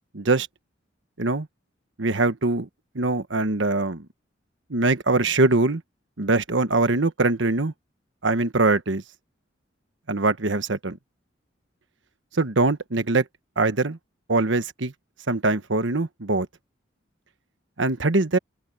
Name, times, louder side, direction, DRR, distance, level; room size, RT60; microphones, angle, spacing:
voice 1, 0.1-0.5 1.2-1.5 2.0-2.7 2.9-4.0 4.7-5.8 6.2-7.7 8.2-9.0 10.1-11.0 12.4-13.2 13.6-14.0 14.3-14.9 15.3-16.5 17.8-18.4, right 2 dB, 75° right, 1.3 m, -22 dB
open air
head